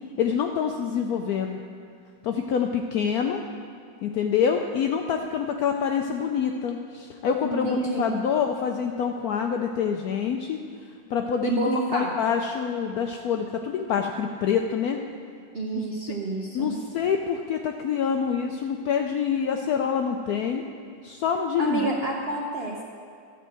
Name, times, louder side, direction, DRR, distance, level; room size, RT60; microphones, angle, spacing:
voice 1, 0.2-1.6 2.2-3.4 4.0-10.6 11.1-15.0 15.8-15.9 16.5-20.6 21.0-22.0, left 7 dB, 75° left, 4 dB, 0.8 m, -26 dB
voice 2, 7.4-8.1 11.4-12.1 15.5-16.7 21.6-22.8, right 2 dB, 50° right, -2 dB, 0.7 m, -28 dB
13.0 x 4.5 x 7.6 m, 2.2 s
omnidirectional pair, 2.0 m